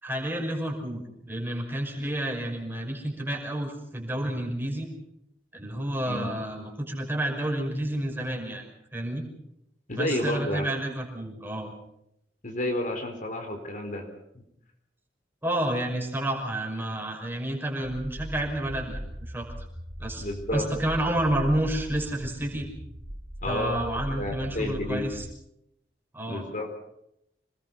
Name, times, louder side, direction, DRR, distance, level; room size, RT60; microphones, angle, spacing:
voice 1, 0.0-4.9 5.5-8.7 8.9-9.2 9.9-11.7 15.4-19.5 20.0-20.3 20.5-22.7 23.5-25.2 26.1-26.4, right 1 dB, 15° right, 1 dB, 5.7 m, -30 dB
voice 2, 9.9-10.7 12.4-14.1 20.2-20.7 23.4-23.8 24.2-25.1 26.3-26.8, left 1 dB, 50° left, 4 dB, 4.3 m, -30 dB
sound 1, 17.8-25.3, equal, 55° right, 2.9 m, -39 dB
27.5 x 20.5 x 5.6 m, 0.79 s
head